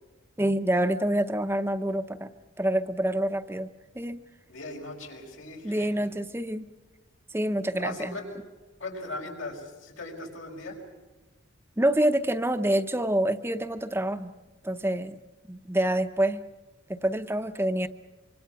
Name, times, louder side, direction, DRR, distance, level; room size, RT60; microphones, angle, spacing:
voice 1, 0.4-2.3 2.6-3.7 4.0-4.2 5.6-6.7 7.3-8.2 11.8-14.3 14.6-15.2 15.5-16.4 16.9-17.9, right 1 dB, 10° right, 8 dB, 0.7 m, -27 dB
voice 2, 4.5-6.1 7.7-8.3 8.8-10.8, left 2 dB, 90° left, 1 dB, 5.5 m, -39 dB
25.5 x 25.0 x 5.9 m, 1.2 s
head